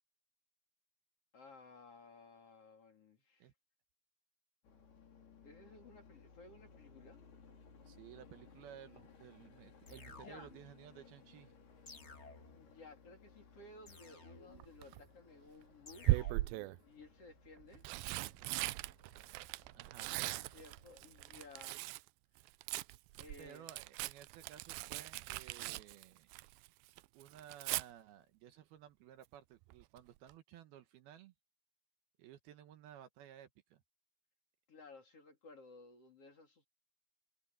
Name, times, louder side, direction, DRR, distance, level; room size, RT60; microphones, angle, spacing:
voice 1, 1.3-3.5 5.4-7.2 10.1-10.5 12.5-16.3 16.8-17.8 20.5-21.8 23.2-23.7 34.7-36.7, left 3 dB, 40° left, 3.4 m, -57 dB
sound 1, 4.6-21.6, left 5 dB, 70° left, 6.5 m, -62 dB
voice 2, 7.9-11.5 19.8-20.3 23.4-26.3 27.1-31.3 32.2-33.8, right 10 dB, 70° right, 2.9 m, -56 dB
sound 2, 9.9-10.8 11.9-12.8 13.9-14.8 15.9-16.7, left 3 dB, 85° left, 0.6 m, -56 dB
Tearing, 14.6-15.0 16.0-16.8 17.6-22.1 22.4-26.7 27.0-27.8 29.7-30.0 30.3-30.4, right 19 dB, 90° right, 2.1 m, -39 dB
omnidirectional pair, 4.8 m